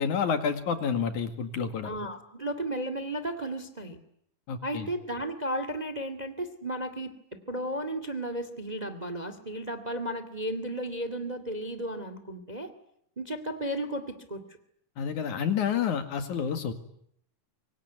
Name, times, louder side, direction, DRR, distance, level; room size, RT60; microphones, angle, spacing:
voice 1, 0.0-1.9 4.5-4.9 15.0-16.7, left 7 dB, 65° left, 8 dB, 3.4 m, -29 dB
voice 2, 1.8-4.0 4.6-7.2 7.5-12.7 13.2-14.4, right 1 dB, 15° right, 11 dB, 1.9 m, -34 dB
25.0 x 25.0 x 9.5 m, 0.71 s
omnidirectional pair, 3.7 m